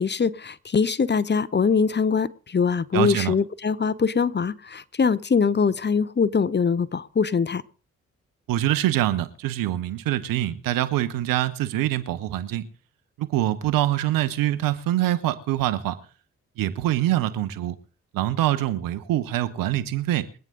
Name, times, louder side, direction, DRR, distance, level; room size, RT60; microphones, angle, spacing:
voice 1, 0.0-7.6, left 5 dB, 30° left, 0.9 m, -23 dB
voice 2, 2.9-3.3 8.5-12.7 13.2-16.0 16.6-17.8 18.1-20.3, right 13 dB, 80° right, 1.1 m, -24 dB
23.0 x 9.1 x 3.9 m
hypercardioid pair, 45°, 33 cm